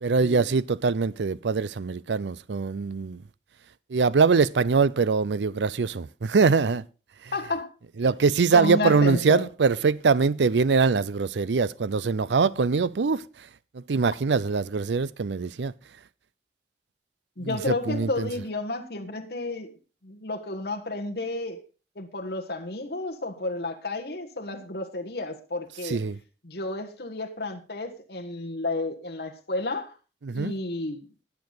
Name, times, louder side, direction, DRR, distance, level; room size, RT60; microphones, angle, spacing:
voice 1, 0.0-3.2 3.9-6.8 8.0-13.2 13.7-15.7 17.4-18.3 25.8-26.2 30.2-30.5, right 4 dB, 85° right, 0.5 m, -23 dB
voice 2, 7.3-7.7 8.5-9.5 17.4-19.7 20.0-21.6 21.9-26.0 26.4-29.9 30.3-31.0, left 2 dB, 70° left, 1.5 m, -31 dB
20.0 x 6.9 x 4.0 m
head